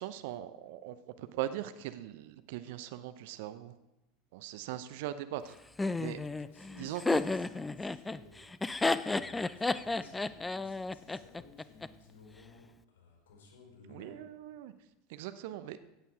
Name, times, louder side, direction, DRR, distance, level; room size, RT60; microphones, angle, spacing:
voice 1, 0.0-3.7 4.3-5.5 6.0-6.2 6.8-7.2 13.9-14.7 15.1-15.8, right 13 dB, 60° right, 12 dB, 0.7 m, -40 dB
Laughter, 5.8-11.9, left 3 dB, 10° left, 0.4 m, -32 dB
voice 2, 6.4-14.3, left 4 dB, 65° left, 0 dB, 5.0 m, -57 dB
16.0 x 8.5 x 4.8 m, 0.93 s
figure-of-eight pair, 75°, 0 cm